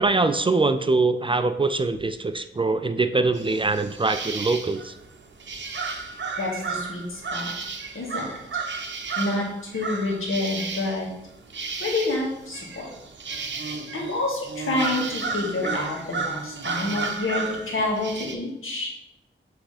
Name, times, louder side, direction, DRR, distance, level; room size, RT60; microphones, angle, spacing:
voice 1, 0.0-4.9, right 3 dB, 25° right, 10 dB, 0.4 m, -23 dB
sound 1, 3.3-18.3, right 4 dB, 60° right, 0.8 m, -33 dB
voice 2, 6.1-7.5 7.9-8.3 9.2-11.1 11.8-12.9 13.9-18.9, left 2 dB, 80° left, -2 dB, 1.9 m, -28 dB
7.7 x 3.4 x 4.9 m, 0.84 s
wide cardioid pair, 110°, 21 cm